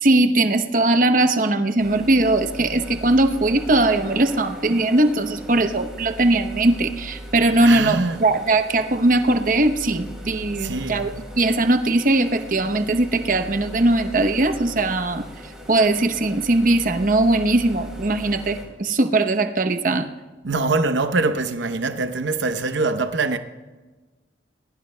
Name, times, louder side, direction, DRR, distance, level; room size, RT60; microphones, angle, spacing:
voice 1, 0.0-11.1 11.4-15.3 15.7-20.1, right 2 dB, 45° right, 0.8 m, -20 dB
sound 1, 1.8-18.6, equal, 5° right, 3.6 m, -39 dB
voice 2, 7.6-8.2 10.6-11.0 20.4-23.4, right 3 dB, 85° right, 0.8 m, -23 dB
28.0 x 20.0 x 2.2 m
head